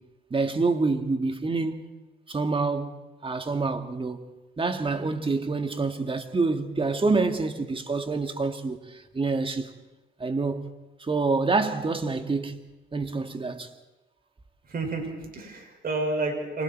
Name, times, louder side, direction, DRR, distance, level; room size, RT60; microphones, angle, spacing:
voice 1, 0.3-1.9 2.3-3.0 3.2-4.2 4.6-9.7 10.2-10.7 11.0-12.6 12.9-13.7, right 3 dB, 25° right, 2.1 m, -27 dB
voice 2, 14.6-16.6, right 2 dB, 50° right, 6.3 m, -30 dB
29.0 x 24.5 x 4.7 m
cardioid pair, 90°, 20 cm